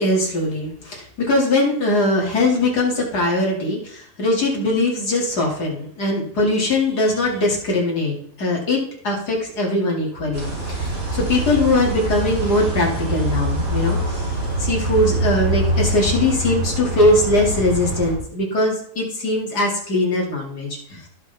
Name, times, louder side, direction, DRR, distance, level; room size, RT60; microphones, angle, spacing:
voice 1, 0.0-21.0, left 2 dB, 80° left, -2 dB, 3.0 m, -21 dB
sound 1, 10.3-18.1, right 1 dB, 55° right, 5.1 m, -24 dB
16.5 x 6.3 x 3.5 m, 0.65 s
omnidirectional pair, 1.7 m